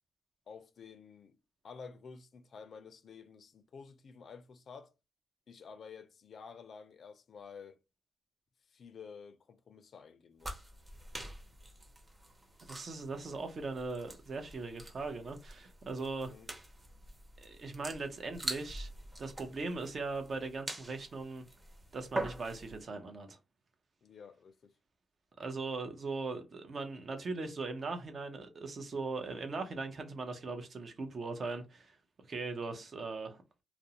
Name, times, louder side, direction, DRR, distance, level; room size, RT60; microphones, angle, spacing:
voice 1, 0.5-1.4 1.6-4.9 5.5-7.8 8.7-10.7 16.2-16.5 24.0-24.7, left 5 dB, 65° left, 0.4 m, -51 dB
sound 1, 10.4-22.8, right 1 dB, 25° right, 0.8 m, -45 dB
voice 2, 12.6-16.3 17.4-18.9 19.2-21.4 21.9-23.4 25.4-32.0 32.3-33.4, right 3 dB, 55° right, 0.6 m, -39 dB
2.4 x 2.0 x 2.8 m
cardioid pair, 75°, 0 cm